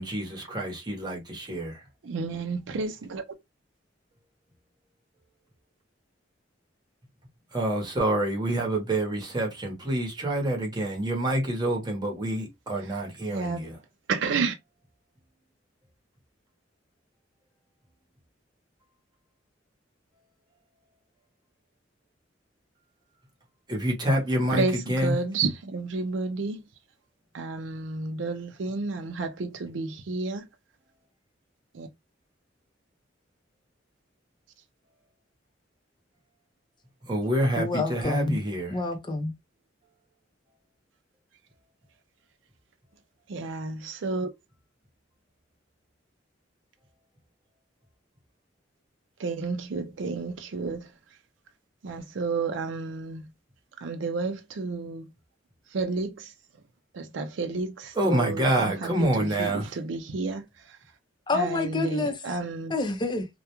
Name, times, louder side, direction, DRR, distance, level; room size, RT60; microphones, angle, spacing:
voice 1, 0.0-1.8 7.5-13.8 23.7-25.2 37.0-38.8 57.9-59.7, right 1 dB, 25° right, 0.9 m, -27 dB
voice 2, 2.0-3.2 13.3-13.6 14.1-14.5 24.5-26.6 27.3-30.5 31.7-31.9 43.3-44.3 49.2-50.9 51.8-53.2 53.8-55.1 55.7-56.3 56.9-58.7 59.0-60.4 61.3-62.7, right 4 dB, 85° right, 0.4 m, -31 dB
voice 3, 37.6-38.4 38.7-39.3 61.3-62.2 62.7-63.3, left 3 dB, 25° left, 0.6 m, -28 dB
2.3 x 2.1 x 2.9 m
head